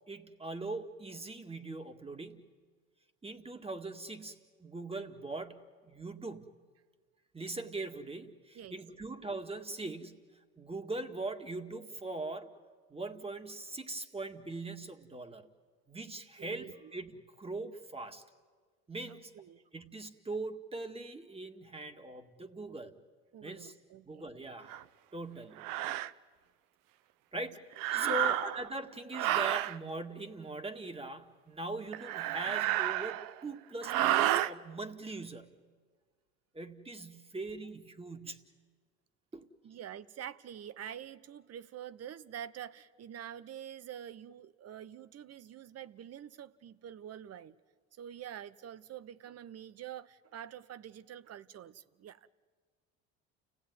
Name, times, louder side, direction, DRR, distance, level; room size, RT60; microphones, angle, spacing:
voice 1, 0.1-2.5 3.2-6.5 7.3-10.2 10.6-12.5 12.9-15.5 15.9-18.2 18.9-19.4 19.7-23.0 23.4-23.7 24.1-24.7 25.1-25.8 27.3-35.5 36.5-38.5 39.3-39.5, right 2 dB, 20° right, 2.1 m, -41 dB
voice 2, 16.4-16.9 19.1-19.6 23.3-24.2 27.9-28.2 39.6-47.6 47.9-52.3, right 10 dB, 50° right, 1.0 m, -46 dB
sound 1, 24.7-24.8 25.6-26.1 27.7-28.7 29.1-29.8 31.9-33.4 33.8-34.5, right 13 dB, 75° right, 0.7 m, -30 dB
29.5 x 16.5 x 9.6 m
supercardioid pair, 80°, 32 cm